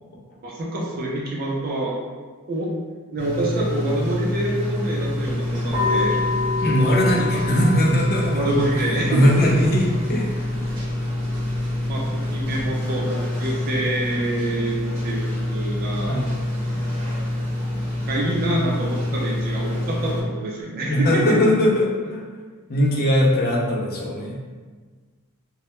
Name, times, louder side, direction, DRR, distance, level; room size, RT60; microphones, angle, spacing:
voice 1, 0.4-1.9 2.5-2.7 3.1-6.2 7.1-7.2 7.5-7.6 8.3-9.2 11.8-15.2 15.5-16.2 18.1-21.4, right 1 dB, 45° right, -3 dB, 0.3 m, -26 dB
sound 1, 3.2-20.2, left 1 dB, 60° right, 0.8 m, -26 dB
sound 2, 5.7-12.7, left 4 dB, 5° right, 1.0 m, -30 dB
voice 2, 6.6-10.3 16.1-16.3 20.9-22.2 22.7-24.3, equal, 45° left, -3 dB, 0.5 m, -20 dB
2.2 x 2.0 x 2.9 m, 1.5 s
head